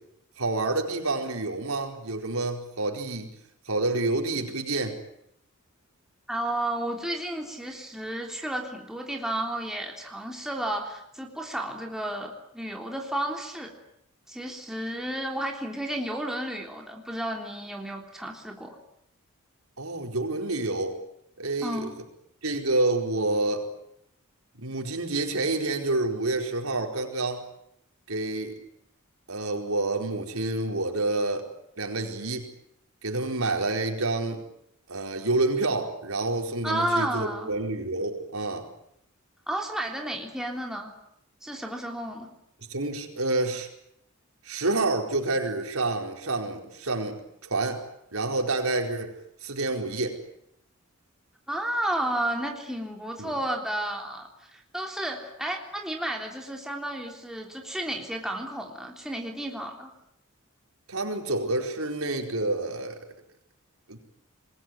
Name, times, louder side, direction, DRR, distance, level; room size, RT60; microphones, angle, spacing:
voice 1, 0.4-3.3 3.6-5.0 19.8-20.9 21.4-21.9 22.4-23.7 24.6-27.4 28.1-28.6 29.3-31.5 31.8-32.5 33.0-34.4 34.9-38.7 42.7-43.7 44.4-47.2 47.4-47.8 48.1-49.1 49.4-50.2 53.2-53.4 60.9-63.0 63.9-64.0, right 2 dB, 80° right, 3 dB, 4.7 m, -28 dB
voice 2, 6.3-13.7 14.3-18.8 21.6-21.9 36.6-37.5 39.5-40.9 41.4-42.3 51.5-59.9, right 1 dB, ahead, 0 dB, 3.5 m, -32 dB
28.0 x 21.0 x 9.4 m, 0.75 s
head